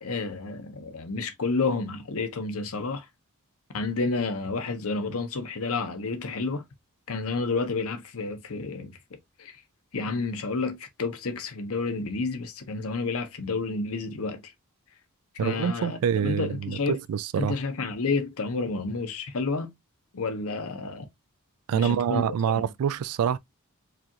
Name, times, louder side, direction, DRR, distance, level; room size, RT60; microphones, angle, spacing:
voice 1, 0.0-3.1 3.7-6.6 7.1-9.0 9.4-9.6 9.9-14.5 15.3-17.0 17.4-19.7 20.1-21.1 21.7-22.3 22.5-22.6, left 3 dB, 70° left, 0.8 m, -30 dB
voice 2, 15.4-17.6 21.7-23.4, right 8 dB, 75° right, 0.3 m, -26 dB
4.8 x 2.4 x 2.8 m
head